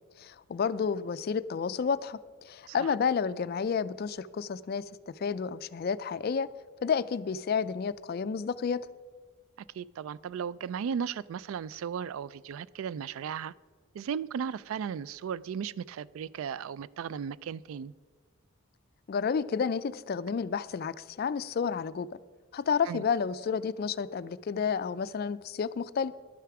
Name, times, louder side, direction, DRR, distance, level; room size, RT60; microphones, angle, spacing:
voice 1, 0.2-6.5 6.8-8.9 19.1-22.1 22.5-26.1, left 6 dB, 45° left, 16 dB, 0.3 m, -31 dB
voice 2, 9.7-13.5 13.9-17.9 22.9-23.0, right 7 dB, 75° right, 20 dB, 0.3 m, -36 dB
11.5 x 9.2 x 4.7 m, 1.5 s
head